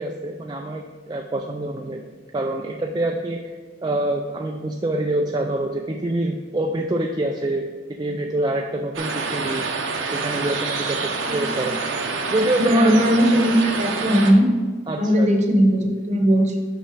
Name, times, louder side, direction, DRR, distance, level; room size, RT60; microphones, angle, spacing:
voice 1, 0.0-2.0 2.3-3.4 3.8-9.6 10.1-11.8 12.3-13.0 14.9-15.3, right 1 dB, 20° right, 1 dB, 0.4 m, -26 dB
sound 1, 8.9-14.3, right 4 dB, 80° right, 0.8 m, -27 dB
voice 2, 12.6-14.5 15.0-16.6, equal, 35° right, 3 dB, 0.9 m, -18 dB
5.7 x 5.6 x 5.0 m, 1.4 s
head